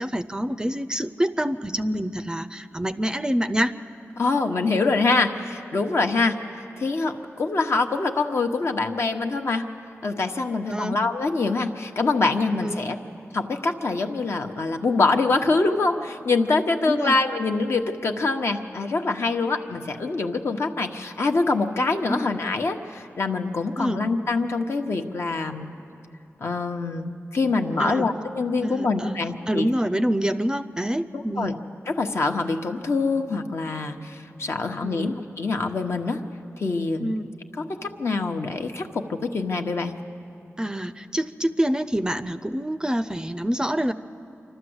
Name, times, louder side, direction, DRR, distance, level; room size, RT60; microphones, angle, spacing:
voice 1, 0.0-3.7 10.7-11.0 12.6-12.8 16.9-17.2 22.1-22.3 23.8-24.0 27.8-28.1 28.6-29.2 29.5-31.6 34.8-35.2 37.0-37.3 40.6-43.9, equal, 15° right, 10 dB, 0.4 m, -26 dB
voice 2, 4.2-6.4 6.8-9.7 10.0-13.0 13.3-25.7 26.4-29.7 31.1-31.5 32.0-36.2 36.6-37.1 37.7-39.9, left 3 dB, 60° left, 5 dB, 1.0 m, -25 dB
27.0 x 12.5 x 7.9 m, 2.7 s
wide cardioid pair, 110°, 5 cm